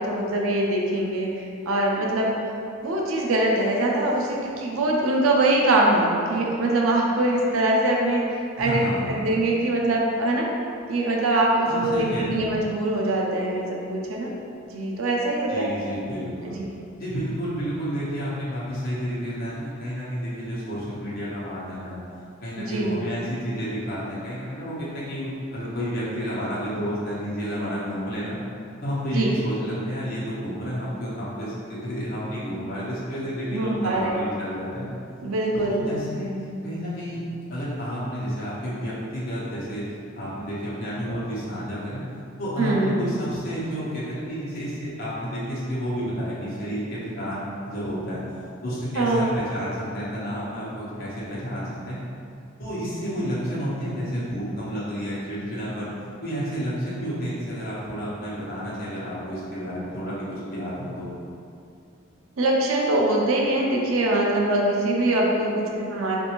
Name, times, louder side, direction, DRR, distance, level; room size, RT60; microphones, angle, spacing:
voice 1, 0.0-2.4 2.8-10.5 10.9-14.3 14.7-15.7 16.5-16.7 22.6-23.0 29.1-29.3 33.5-34.2 35.2-35.8 42.6-43.0 49.0-49.3 62.4-66.2, right 1 dB, 90° right, -1 dB, 0.5 m, -23 dB
voice 2, 8.6-9.2 11.6-12.4 15.5-16.6 17.0-22.0 22.4-28.4 28.8-34.9 35.5-36.3 36.6-37.2 37.5-39.9 40.2-42.0 42.4-48.2 48.6-52.0 52.6-55.9 56.2-61.1, equal, 45° left, -9 dB, 0.9 m, -30 dB
3.3 x 2.6 x 3.0 m, 2.5 s
head